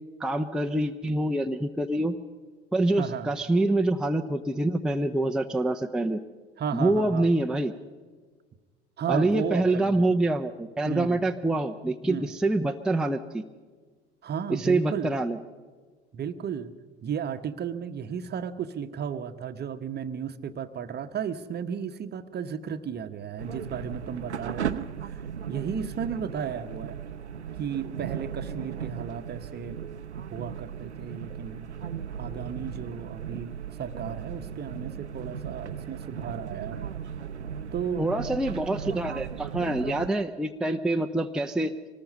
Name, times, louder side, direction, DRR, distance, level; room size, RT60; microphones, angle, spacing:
voice 1, 0.2-2.1 2.7-6.2 6.7-7.7 9.1-13.4 14.5-15.4 38.0-41.7, right 2 dB, ahead, 4 dB, 0.7 m, -26 dB
voice 2, 3.0-3.3 6.6-7.3 9.0-10.2 10.8-11.2 12.1-12.3 14.2-15.2 16.1-16.7 17.0-25.2 25.5-27.0 27.6-29.8 30.3-31.7 32.2-36.9 37.7-38.1, right 7 dB, 30° right, 11 dB, 1.1 m, -34 dB
sound 1, 23.4-40.1, right 7 dB, 85° right, 0.7 m, -37 dB
25.0 x 19.5 x 5.4 m, 1.5 s
figure-of-eight pair, 75°, 33 cm